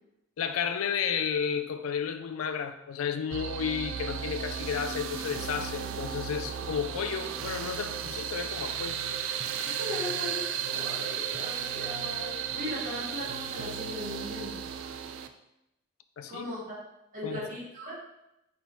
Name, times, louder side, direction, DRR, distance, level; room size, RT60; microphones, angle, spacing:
voice 1, 0.4-9.0 9.6-9.8 16.2-16.5 17.2-17.5, left 7 dB, 85° left, 9 dB, 0.4 m, -32 dB
sound 1, 3.3-15.3, right 8 dB, 65° right, 0.3 m, -34 dB
voice 2, 9.6-14.6 16.3-16.8 17.1-17.9, left 1 dB, 40° right, -7 dB, 1.6 m, -38 dB
5.2 x 2.9 x 3.0 m, 0.88 s
head